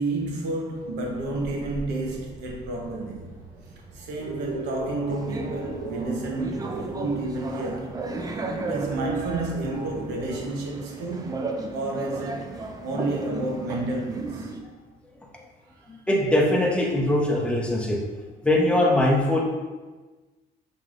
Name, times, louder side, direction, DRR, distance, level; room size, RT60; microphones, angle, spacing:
voice 1, 0.0-3.3 3.9-7.9 8.6-11.3 11.7-14.5 15.7-15.8, right 2 dB, 85° right, 0 dB, 1.0 m, -30 dB
sound 1, 0.7-10.4, right 3 dB, 55° right, 0.9 m, -38 dB
sound 2, 5.0-14.6, right 3 dB, 20° right, 0.5 m, -35 dB
voice 2, 16.1-18.0 18.4-19.4, left 1 dB, 5° left, -2 dB, 0.9 m, -21 dB
5.8 x 3.3 x 2.5 m, 1.3 s
cardioid pair, 110°, 17 cm